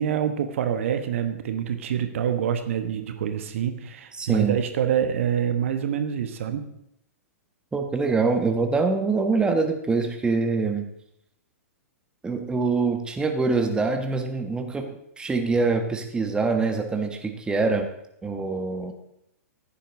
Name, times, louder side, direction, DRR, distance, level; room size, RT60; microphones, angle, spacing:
voice 1, 0.0-6.7, right 9 dB, 55° right, 8 dB, 1.3 m, -26 dB
voice 2, 4.2-4.6 7.7-10.9 12.2-17.9 18.2-18.9, right 4 dB, 10° right, 5 dB, 1.3 m, -24 dB
15.0 x 10.5 x 3.9 m, 0.79 s
figure-of-eight pair, 105°, 8 cm